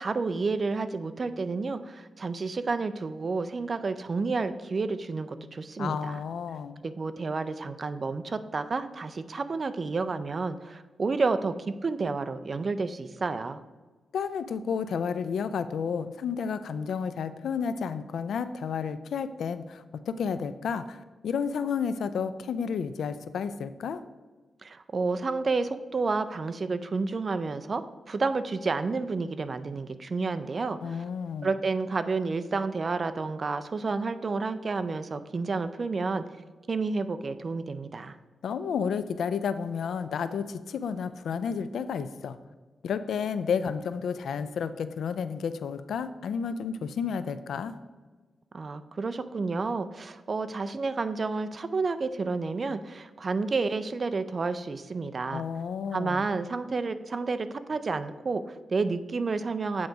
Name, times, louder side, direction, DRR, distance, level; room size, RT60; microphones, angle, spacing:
voice 1, 0.0-6.2 6.8-13.6 24.6-31.0 31.4-36.2 36.7-38.2 48.5-55.4 55.9-59.9, right 4 dB, 45° right, 11 dB, 0.4 m, -30 dB
voice 2, 5.8-6.8 14.1-24.0 30.8-31.5 38.4-42.4 42.8-47.7 55.3-56.3, left 6 dB, 85° left, 12 dB, 0.4 m, -31 dB
8.6 x 3.9 x 4.7 m, 1.3 s
cardioid pair, 85°, 0 cm